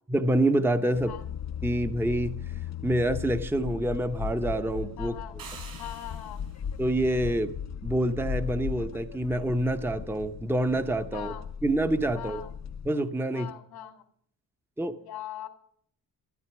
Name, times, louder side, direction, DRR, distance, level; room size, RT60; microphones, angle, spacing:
voice 1, 0.1-1.2 1.6-2.4 2.8-5.1 6.8-7.5 7.8-11.3 11.6-12.4 12.8-13.5 14.8-14.9, right 1 dB, 5° right, 9 dB, 0.8 m, -27 dB
sound 1, 0.9-12.9, left 7 dB, 45° left, 0.6 m, -37 dB
voice 2, 5.0-5.3 5.8-6.4 11.1-11.4 12.1-12.5 13.3-14.0 15.0-15.5, left 12 dB, 85° left, 7 dB, 2.1 m, -40 dB
sound 2, 5.4-6.7, right 5 dB, 65° right, 5.7 m, -46 dB
13.0 x 13.0 x 6.0 m, 0.64 s
cardioid pair, 125°, 37 cm